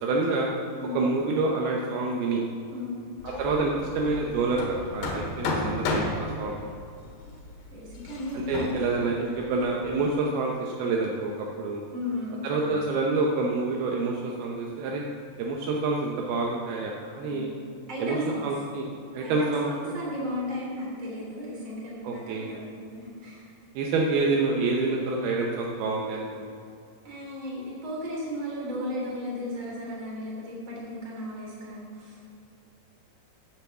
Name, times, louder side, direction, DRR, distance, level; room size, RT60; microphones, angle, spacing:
voice 1, 0.0-0.5 0.9-2.4 3.2-6.6 8.3-11.8 12.4-15.0 15.4-17.5 18.0-18.2 18.4-18.9 19.1-19.7 22.0-22.5 23.8-26.5, right 3 dB, 75° right, -1 dB, 2.7 m, -27 dB
Hammer, 3.2-10.1, left 2 dB, 85° left, 3.5 m, -34 dB
voice 2, 7.7-8.7 9.4-9.7 11.9-12.5 17.2-17.5 17.9-18.5 19.2-23.5 27.0-32.2, left 1 dB, 30° right, -4 dB, 3.5 m, -35 dB
10.5 x 8.0 x 7.2 m, 2.5 s
omnidirectional pair, 4.7 m